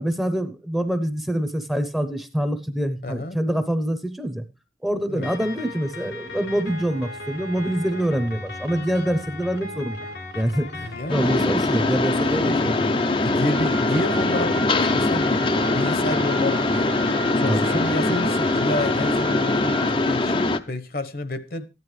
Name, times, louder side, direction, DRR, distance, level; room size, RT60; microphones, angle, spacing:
voice 1, 0.0-4.4 4.8-10.0 10.3-12.9 17.5-17.8, equal, ahead, 0.8 m, -25 dB
voice 2, 3.0-3.4 5.1-5.3 10.8-11.3 12.3-12.8 13.2-17.0 17.4-21.7, left 1 dB, 55° left, 1.1 m, -29 dB
sound 1, 5.2-19.9, left 2 dB, 90° left, 3.8 m, -37 dB
Mechanisms, 11.1-20.6, left 2 dB, 30° left, 0.6 m, -22 dB
Wind instrument woodwind instrument, 13.5-20.0, right 2 dB, 45° right, 1.4 m, -36 dB
14.5 x 11.0 x 3.2 m
head